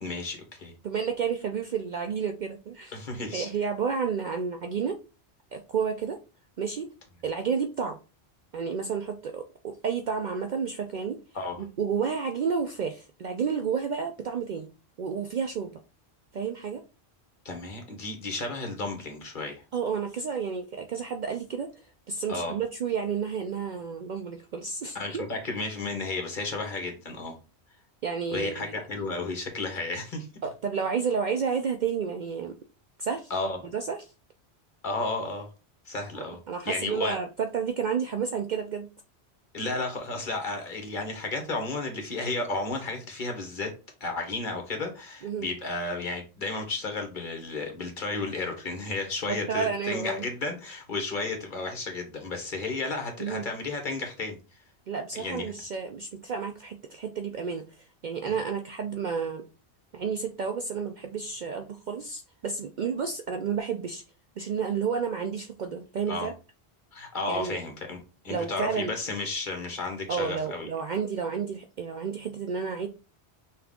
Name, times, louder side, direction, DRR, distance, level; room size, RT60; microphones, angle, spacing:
voice 1, 0.0-0.7 2.9-3.5 11.3-11.6 17.4-19.6 22.3-22.6 24.9-27.3 28.3-30.3 33.3-33.6 34.8-35.5 35.9-36.4 36.6-37.2 39.5-43.7 44.0-54.4 55.1-55.5 66.1-66.3 66.9-70.7, left 3 dB, 50° left, 1.2 m, -33 dB
voice 2, 0.8-3.0 3.3-5.0 5.5-6.2 6.6-6.9 7.2-8.0 8.5-11.2 11.6-14.7 15.0-15.7 16.3-16.8 19.7-21.7 22.1-25.3 28.0-28.8 30.4-32.5 33.0-33.3 33.7-34.0 36.2-38.9 45.2-45.5 49.3-50.3 53.2-53.4 54.9-59.4 59.9-64.0 64.4-66.3 67.3-67.6 68.3-69.0 70.1-72.9, right 6 dB, 60° right, 0.5 m, -31 dB
5.8 x 2.4 x 3.6 m
omnidirectional pair, 1.1 m